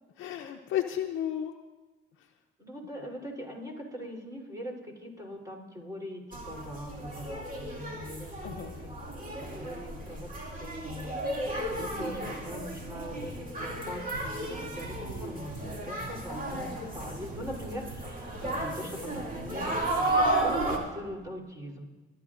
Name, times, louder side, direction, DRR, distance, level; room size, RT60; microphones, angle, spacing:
voice 1, 0.2-1.5 8.4-8.8 12.0-12.4 16.5-16.9, left 10 dB, 80° left, 2 dB, 0.6 m, -34 dB
voice 2, 2.6-8.8 9.3-10.3 10.6-11.1 11.7-21.8, equal, 15° right, -1 dB, 3.4 m, -41 dB
sound 1, 6.3-20.8, right 1 dB, 45° right, 2.4 m, -33 dB
25.5 x 11.5 x 2.5 m, 1.2 s
cardioid pair, 90°, 20 cm